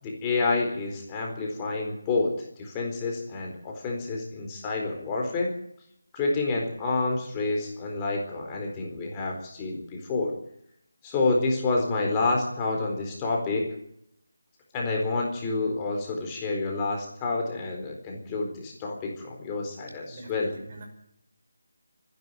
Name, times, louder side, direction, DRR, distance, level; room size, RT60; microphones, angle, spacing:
voice 1, 0.0-5.5 6.1-10.3 11.0-13.8 14.7-20.5, left 3 dB, 15° left, 0 dB, 4.2 m, -28 dB
voice 2, 20.0-20.9, right 2 dB, 35° right, 3 dB, 5.7 m, -45 dB
25.0 x 11.0 x 9.4 m, 0.74 s
figure-of-eight pair, 170°, 0 cm